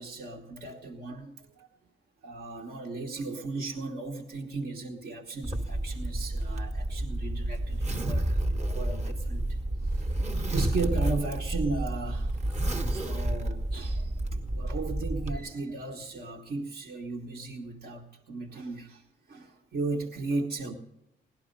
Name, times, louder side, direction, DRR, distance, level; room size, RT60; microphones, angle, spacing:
voice 1, 0.0-1.7 2.2-20.8, right 3 dB, 60° right, -1 dB, 1.6 m, -36 dB
Zipper (clothing), 5.4-15.4, right 1 dB, 35° right, 1.5 m, -30 dB
18.0 x 11.5 x 5.4 m, 0.87 s
cardioid pair, 90°, 20 cm